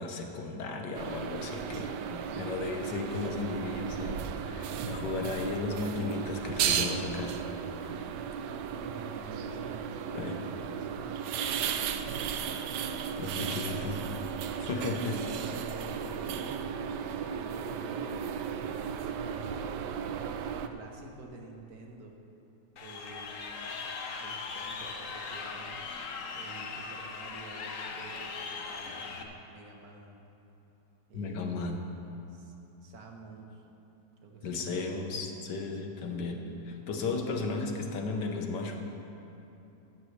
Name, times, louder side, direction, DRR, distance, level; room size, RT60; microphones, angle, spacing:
voice 1, 0.0-7.4 10.1-10.4 13.2-14.0 14.6-15.2 31.1-31.8 34.4-36.4 36.9-38.8, left 3 dB, 85° left, 3 dB, 1.7 m, -35 dB
sound 1, 0.9-20.7, right 7 dB, 80° right, 1.2 m, -35 dB
voice 2, 8.7-12.8 14.9-16.7 17.2-20.0 20.5-22.2 22.8-23.8 24.2-25.8 26.4-30.3 31.1-31.8 32.3-33.6 34.2-35.2 36.7-37.1, right 2 dB, 65° right, 1 dB, 1.8 m, -49 dB
Crowd, 22.8-29.2, left 4 dB, 55° left, 1.2 m, -39 dB
16.0 x 13.0 x 3.3 m, 2.9 s
omnidirectional pair, 1.8 m